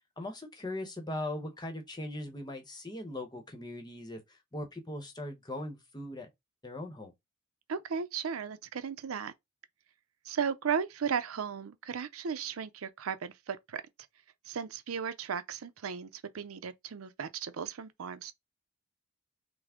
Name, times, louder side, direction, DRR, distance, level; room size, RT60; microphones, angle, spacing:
voice 1, 0.2-6.3 6.6-7.1, left 1 dB, 20° left, 0.8 m, -40 dB
voice 2, 7.7-9.3 10.2-13.8 14.5-18.3, right 6 dB, 85° right, 0.5 m, -35 dB
5.8 x 2.0 x 3.6 m
head